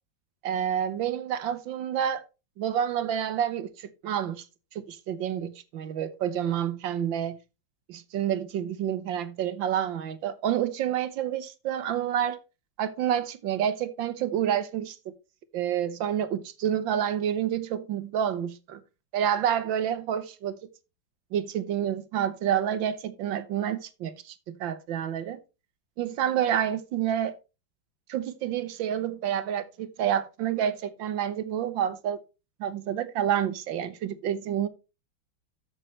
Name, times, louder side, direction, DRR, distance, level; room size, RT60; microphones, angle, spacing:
voice 1, 0.4-2.2 2.6-4.4 4.7-7.4 7.9-12.4 12.8-15.0 15.5-18.8 19.1-20.6 21.3-25.4 26.0-27.3 28.1-32.2 32.6-34.7, right 9 dB, 75° right, 1.5 m, -28 dB
13.0 x 6.6 x 3.2 m
omnidirectional pair, 2.1 m